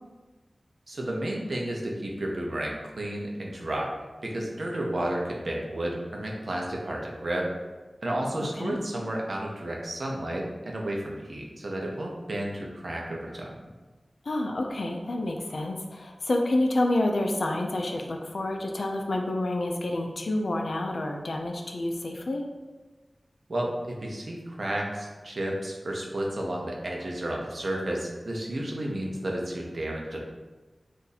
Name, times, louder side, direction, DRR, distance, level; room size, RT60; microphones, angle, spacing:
voice 1, 0.9-3.9 4.2-7.5 8.0-13.7 23.5-30.2, right 1 dB, 70° right, -1 dB, 0.6 m, -32 dB
voice 2, 8.4-8.8 14.3-22.4, left 1 dB, 80° left, 2 dB, 0.4 m, -28 dB
2.7 x 2.5 x 3.9 m, 1.2 s
wide cardioid pair, 55°, 0 cm